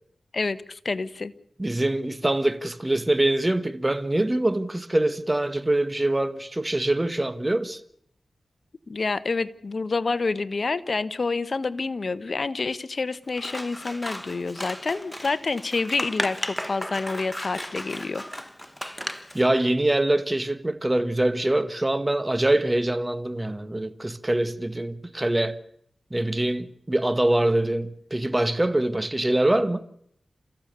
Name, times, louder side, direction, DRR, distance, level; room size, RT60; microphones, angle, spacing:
voice 1, 0.3-1.3 8.9-18.2, left 3 dB, 60° left, 1.1 m, -28 dB
voice 2, 1.6-7.8 19.3-25.6 26.1-29.8, right 1 dB, 20° right, 1.6 m, -24 dB
Scissors, 13.3-19.4, equal, 5° left, 1.4 m, -35 dB
30.0 x 15.0 x 6.9 m
cardioid pair, 45°, 0 cm